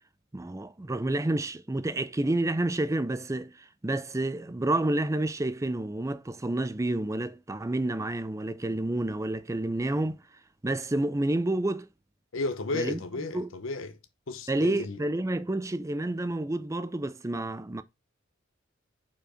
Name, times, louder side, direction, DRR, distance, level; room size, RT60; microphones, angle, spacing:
voice 1, 0.3-10.2 10.6-11.9 12.7-13.0 13.3-13.5 14.5-17.8, right 1 dB, 15° right, 0.4 m, -29 dB
voice 2, 12.3-14.0 14.3-15.0, left 3 dB, 75° left, 0.8 m, -33 dB
5.3 x 4.5 x 4.9 m
head